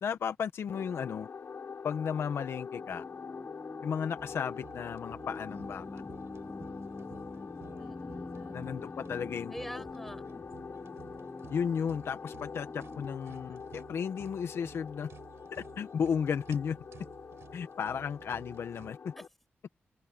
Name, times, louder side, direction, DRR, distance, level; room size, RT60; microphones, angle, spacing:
voice 1, 0.0-1.3 1.8-3.0 3.8-6.0 8.5-9.8 11.5-15.1 15.5-16.8 17.5-19.1, left 7 dB, 75° left, 1.1 m, -34 dB
sound 1, 0.7-19.3, left 6 dB, 55° left, 6.9 m, -45 dB
sound 2, 2.7-13.1, left 2 dB, 25° left, 6.5 m, -46 dB
sound 3, 4.2-18.9, right 8 dB, 90° right, 6.5 m, -55 dB
voice 2, 7.8-9.2 9.5-10.2 19.2-19.3, equal, 5° left, 6.5 m, -46 dB
open air
wide cardioid pair, 125°, 4 cm